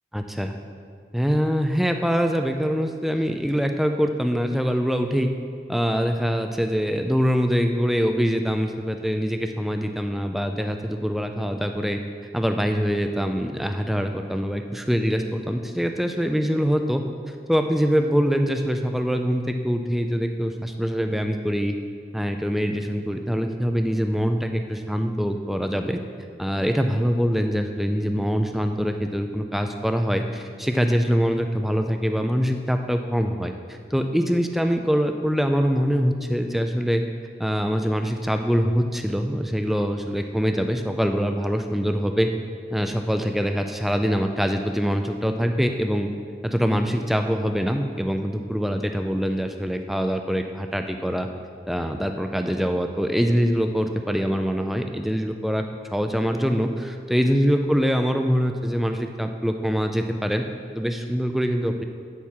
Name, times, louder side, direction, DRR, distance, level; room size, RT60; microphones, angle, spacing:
voice 1, 0.1-0.5 1.1-5.3 5.7-12.0 12.3-17.0 17.5-21.8 22.1-26.0 26.4-37.0 37.4-42.3 42.7-46.1 46.4-51.3 51.7-55.6 55.9-60.4 60.7-61.8, equal, ahead, 5 dB, 0.3 m, -24 dB
8.3 x 4.5 x 7.2 m, 2.1 s
head